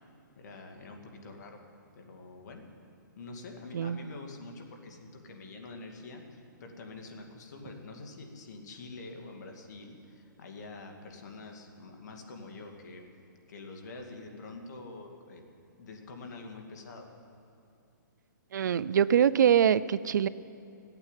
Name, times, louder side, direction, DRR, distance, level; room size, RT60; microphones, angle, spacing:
voice 1, 0.4-1.6 1.9-2.6 3.2-13.0 13.5-15.4 15.8-17.1, left 3 dB, 60° left, 3 dB, 2.4 m, -46 dB
voice 2, 18.5-20.3, right 9 dB, 65° right, 18 dB, 0.5 m, -24 dB
14.5 x 9.0 x 9.1 m, 2.7 s
hypercardioid pair, 150°, 11 cm